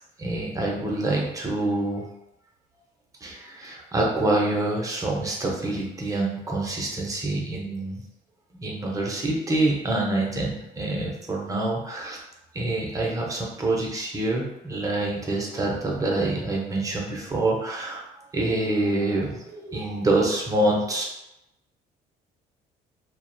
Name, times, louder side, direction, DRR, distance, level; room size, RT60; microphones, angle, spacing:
voice 1, 0.2-2.0 3.2-8.0 8.6-12.2 12.5-18.0 18.3-21.0, right 2 dB, 20° right, -2 dB, 0.6 m, -26 dB
2.4 x 2.1 x 2.6 m, 0.87 s
cardioid pair, 110°, 17 cm